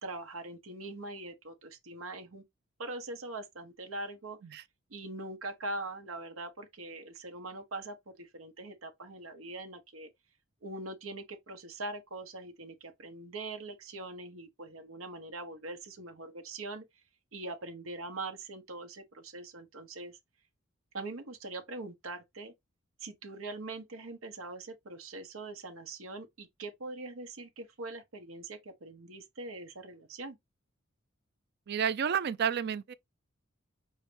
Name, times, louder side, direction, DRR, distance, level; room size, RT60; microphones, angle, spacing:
voice 1, 0.0-2.4 2.8-4.4 4.9-10.1 10.6-16.8 17.3-20.2 20.9-22.5 23.0-30.4, right 2 dB, 90° right, 0.9 m, -42 dB
voice 2, 31.7-32.9, right 8 dB, 55° right, 0.4 m, -30 dB
5.6 x 2.6 x 3.3 m
head